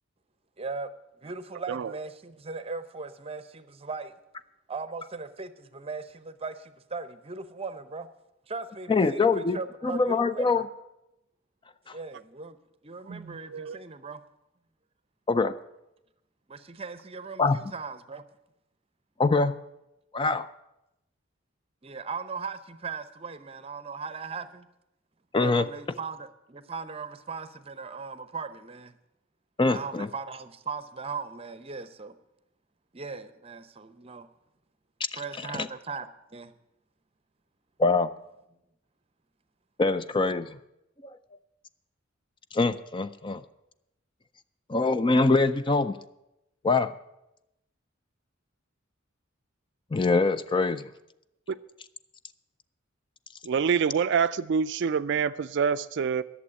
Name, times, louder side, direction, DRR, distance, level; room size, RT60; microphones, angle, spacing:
voice 1, 0.6-0.9 1.2-4.1 4.7-8.1 8.5-10.6 11.9-12.6 12.8-14.2 16.5-18.2 21.8-24.7 25.4-28.9 29.7-32.2 32.9-34.3 35.2-36.5, right 4 dB, 30° right, 0.7 m, -38 dB
voice 2, 8.9-10.7 11.9-12.0 15.3-15.6 17.4-17.6 19.2-19.6 20.1-20.5 25.3-25.7 29.6-30.1 35.1-35.2 35.5-35.7 37.8-38.1 39.8-40.6 41.0-41.2 42.5-43.4 44.7-46.0 46.6-46.9 49.9-50.9, left 3 dB, 25° left, 0.4 m, -24 dB
voice 3, 13.1-13.8 51.5-51.6 53.4-56.2, right 6 dB, 60° right, 0.4 m, -27 dB
11.5 x 7.1 x 9.8 m
head